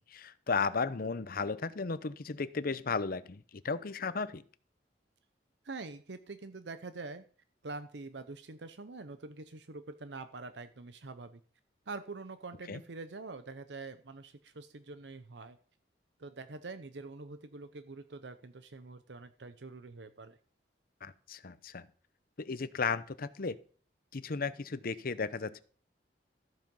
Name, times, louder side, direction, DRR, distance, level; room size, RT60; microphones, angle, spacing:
voice 1, 0.1-4.4 12.7-12.8 21.0-21.9 22.4-23.6 24.1-25.6, left 4 dB, 55° left, 15 dB, 0.7 m, -35 dB
voice 2, 5.6-7.3 7.6-11.4 11.9-15.6 16.2-20.4, right 3 dB, 75° right, 11 dB, 0.8 m, -45 dB
14.0 x 7.6 x 5.4 m, 0.42 s
head